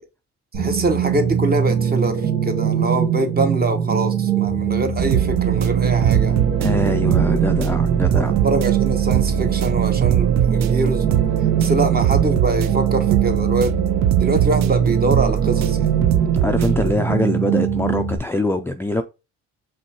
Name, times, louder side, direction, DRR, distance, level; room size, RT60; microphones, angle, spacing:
voice 1, 0.5-6.3 8.4-11.0 11.6-13.8 14.2-15.9, right 2 dB, 30° right, 1.0 m, -24 dB
sound 1, 0.5-18.2, right 8 dB, 85° right, 1.4 m, -22 dB
sound 2, 5.0-16.9, right 11 dB, 65° right, 0.5 m, -22 dB
voice 2, 6.6-8.3 11.7-11.8 16.4-19.0, left 2 dB, 10° left, 0.3 m, -23 dB
5.3 x 3.1 x 2.9 m
cardioid pair, 90°, 30 cm